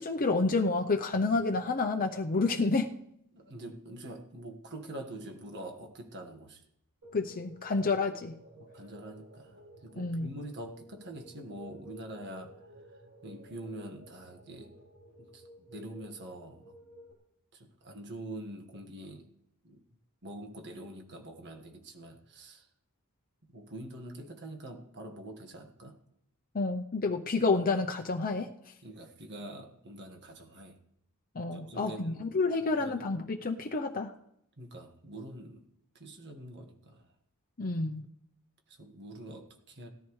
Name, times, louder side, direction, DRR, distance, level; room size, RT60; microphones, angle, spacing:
voice 1, 0.0-2.9 7.1-8.4 10.0-10.3 26.5-28.5 31.4-34.1 37.6-38.0, left 3 dB, 40° left, 3 dB, 0.7 m, -29 dB
voice 2, 3.3-6.6 8.6-14.7 15.2-16.8 17.5-19.3 19.6-19.8 20.2-22.7 23.4-26.0 28.8-30.8 31.5-32.3 32.6-32.9 34.6-35.7 35.9-37.1 38.7-39.9, right 1 dB, 50° right, 4 dB, 1.6 m, -45 dB
sound 1, 7.0-17.1, right 1 dB, 75° right, 3.3 m, -54 dB
18.0 x 14.0 x 3.2 m, 0.75 s
head